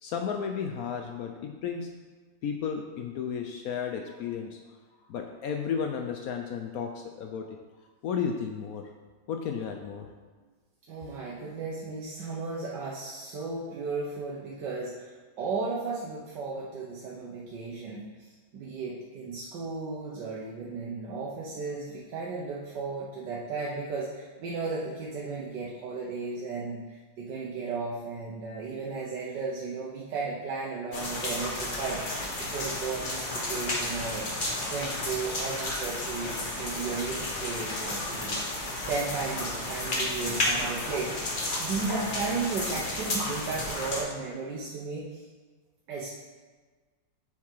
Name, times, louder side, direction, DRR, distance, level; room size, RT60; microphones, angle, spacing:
voice 1, 0.0-2.0 2.4-4.6 5.1-7.6 8.0-8.9 9.3-10.1, left 7 dB, 70° left, 4 dB, 0.8 m, -33 dB
voice 2, 10.9-15.1 15.4-18.0 18.5-26.8 27.2-45.2 45.9-46.1, right 4 dB, 75° right, -5 dB, 1.5 m, -35 dB
sound 1, 30.9-44.0, left 1 dB, 35° left, 1.0 m, -32 dB
7.0 x 4.7 x 4.6 m, 1.4 s
omnidirectional pair, 2.0 m